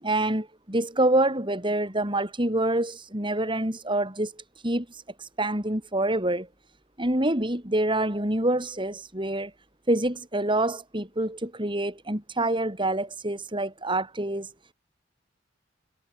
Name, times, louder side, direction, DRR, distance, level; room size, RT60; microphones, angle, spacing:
voice 1, 0.0-4.3 4.6-6.5 7.0-9.5 9.9-14.5, right 1 dB, 25° right, 6.5 m, -26 dB
head